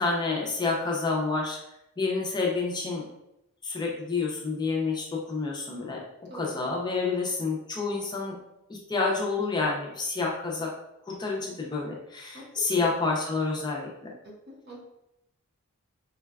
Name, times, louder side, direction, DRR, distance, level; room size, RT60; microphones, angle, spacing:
voice 1, 0.0-1.6 2.0-3.0 3.6-6.0 6.3-8.3 8.7-10.7 11.1-13.9, left 4 dB, 20° left, -2 dB, 0.4 m, -28 dB
voice 2, 12.3-12.9 14.2-14.8, equal, 50° right, -2 dB, 0.8 m, -43 dB
3.8 x 2.2 x 2.2 m, 0.85 s
head